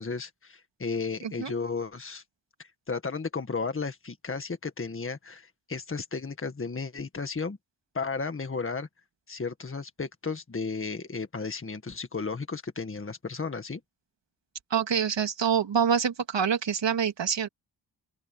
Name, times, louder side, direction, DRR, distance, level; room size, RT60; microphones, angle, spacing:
voice 1, 0.0-2.2 2.6-7.6 7.9-8.9 9.3-13.8, left 4 dB, 30° left, 1.8 m, -34 dB
voice 2, 14.7-17.5, right 7 dB, 75° right, 2.5 m, -26 dB
open air
wide cardioid pair, 125°, 44 cm